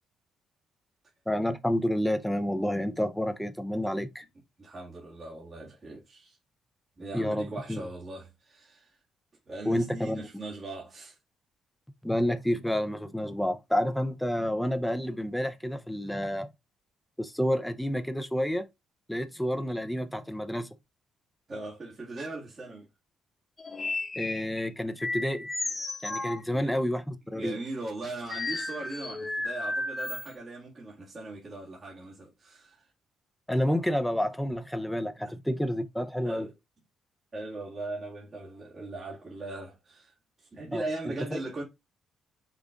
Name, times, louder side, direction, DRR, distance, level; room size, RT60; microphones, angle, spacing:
voice 1, 1.3-4.2 7.1-7.8 9.7-10.3 12.0-16.5 17.2-18.7 19.1-20.8 24.2-25.5 26.0-27.6 33.5-36.5 40.7-40.8 41.3-41.4, equal, 5° left, 0.6 m, -29 dB
voice 2, 4.6-6.4 7.0-9.0 9.5-11.2 21.5-22.9 26.5-26.7 27.3-32.9 35.2-35.3 36.2-36.5 37.3-41.6, right 2 dB, 35° right, 1.8 m, -39 dB
sound 1, 23.6-24.7 25.0-26.4 28.3-30.3, left 2 dB, 25° left, 0.9 m, -33 dB
5.5 x 2.4 x 3.5 m
cardioid pair, 90°, 0 cm